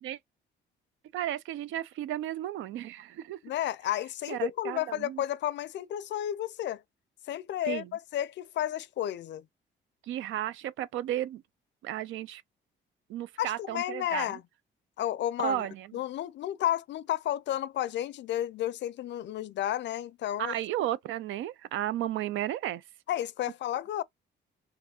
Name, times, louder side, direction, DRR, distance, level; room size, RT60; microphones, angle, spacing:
voice 1, 1.1-3.4 4.3-5.2 7.7-7.9 10.1-11.4 11.8-12.4 13.1-14.4 15.4-15.9 20.4-22.8, right 12 dB, 80° right, 0.4 m, -33 dB
voice 2, 3.4-6.8 7.3-9.4 13.4-14.4 15.0-15.6 15.9-20.5 23.1-24.0, left 12 dB, 65° left, 0.4 m, -32 dB
3.2 x 2.6 x 4.2 m
cardioid pair, 90°, 20 cm